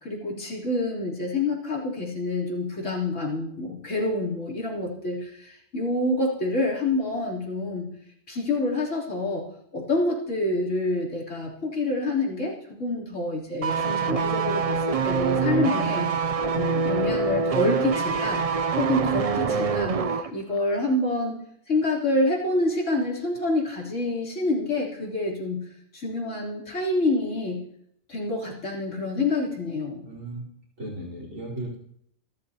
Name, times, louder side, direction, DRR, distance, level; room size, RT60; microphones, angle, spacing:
voice 1, 0.0-7.9 8.3-9.5 9.7-16.1 16.5-18.4 18.8-21.4 21.7-25.6 25.9-27.6 28.1-30.0, left 2 dB, 70° left, -4 dB, 3.7 m, -27 dB
sound 1, 13.6-20.3 20.6-20.7, right 5 dB, 50° right, 0.4 m, -25 dB
voice 2, 19.3-20.1 30.0-31.8, right 2 dB, 90° right, -2 dB, 4.5 m, -37 dB
27.0 x 12.5 x 2.8 m, 0.71 s
omnidirectional pair, 1.3 m